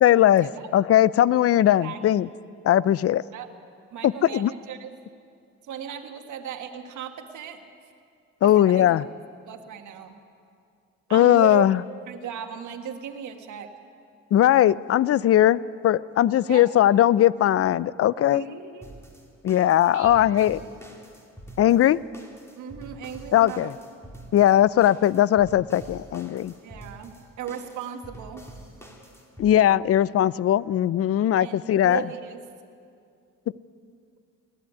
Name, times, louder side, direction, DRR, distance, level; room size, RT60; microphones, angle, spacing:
voice 1, 0.0-0.5 0.7-2.3 2.6-3.2 4.0-4.5 8.4-9.0 11.1-11.8 14.3-18.4 19.4-20.6 21.6-22.0 23.3-23.7 24.3-26.5 29.4-32.0, left 12 dB, 50° left, 20 dB, 0.5 m, -19 dB
voice 2, 3.9-4.9 5.6-7.6 8.4-8.9 9.5-10.2 11.1-11.6 12.1-13.7 16.5-16.7 18.3-18.9 19.9-20.5 22.6-23.7 26.6-28.5 31.4-32.4, right 9 dB, 75° right, 5 dB, 1.6 m, -36 dB
sound 1, 18.8-29.5, right 1 dB, 10° left, 3.1 m, -46 dB
19.5 x 14.5 x 9.5 m, 2.4 s
cardioid pair, 90°, 30 cm